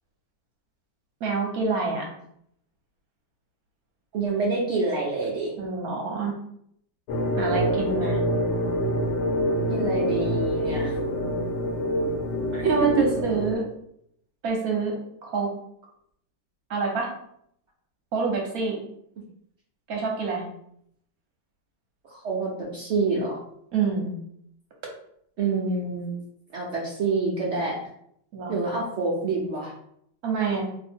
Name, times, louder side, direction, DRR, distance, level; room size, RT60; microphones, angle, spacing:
voice 1, 1.2-2.1 5.6-6.3 7.4-8.2 12.6-13.6 14.4-14.9 15.2-15.5 16.7-17.1 18.1-18.8 19.9-20.4 23.7-24.1 28.3-28.6 30.2-30.6, right 4 dB, 65° right, 0 dB, 1.0 m, -27 dB
voice 2, 4.1-5.5 9.7-11.0 12.5-12.7 22.0-23.4 25.4-26.2 26.5-27.8 28.5-29.7, right 3 dB, 85° right, -3 dB, 0.6 m, -27 dB
sound 1, 7.1-13.5, equal, 85° left, 1.3 m, -26 dB
2.7 x 2.6 x 4.3 m, 0.71 s
omnidirectional pair, 2.0 m